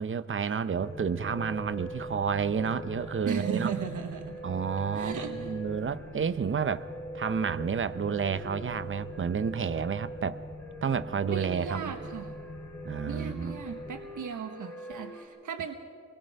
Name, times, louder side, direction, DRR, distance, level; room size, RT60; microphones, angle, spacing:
voice 1, 0.0-3.7 4.4-6.9 7.1-10.4 10.8-11.9 12.8-13.6, right 6 dB, 40° right, 13 dB, 0.7 m, -30 dB
sound 1, 0.8-14.0, left 2 dB, 25° left, 5.8 m, -46 dB
sound 2, 0.8-15.2, right 1 dB, 5° left, 3.9 m, -43 dB
voice 2, 3.2-4.4 4.9-5.5 11.3-12.3 13.1-15.8, right 7 dB, 80° right, 5 dB, 1.2 m, -36 dB
25.5 x 20.5 x 5.4 m, 2.3 s
wide cardioid pair, 170°, 30 cm